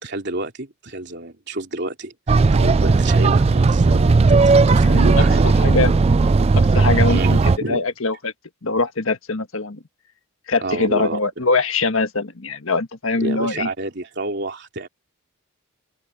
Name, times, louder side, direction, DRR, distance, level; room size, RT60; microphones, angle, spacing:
voice 1, 0.0-5.6 7.1-7.8 10.6-11.2 13.2-14.9, right 2 dB, 55° right, 3.2 m, -29 dB
sound 1, 2.3-7.6, right 3 dB, 30° right, 0.3 m, -15 dB
voice 2, 4.8-5.2 5.6-5.9 6.7-7.4 7.7-8.3 8.6-9.8 10.5-13.7, left 3 dB, 75° left, 1.5 m, -22 dB
open air
head